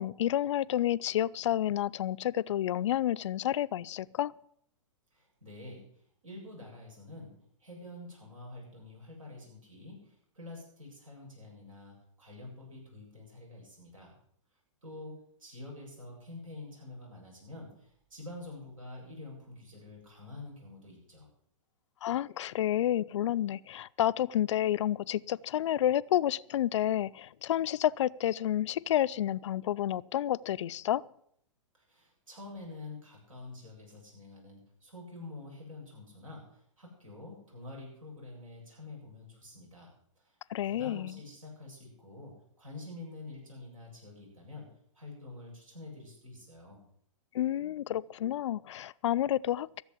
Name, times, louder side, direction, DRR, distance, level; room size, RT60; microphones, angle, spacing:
voice 1, 0.0-4.3 22.0-31.0 40.5-41.2 47.3-49.8, left 12 dB, 60° left, 17 dB, 0.4 m, -30 dB
voice 2, 5.1-14.2 14.8-21.3 31.9-40.4 40.6-46.8, left 2 dB, 80° right, -1 dB, 7.7 m, -47 dB
14.5 x 7.5 x 8.2 m, 0.67 s
hypercardioid pair, 120°, 17 cm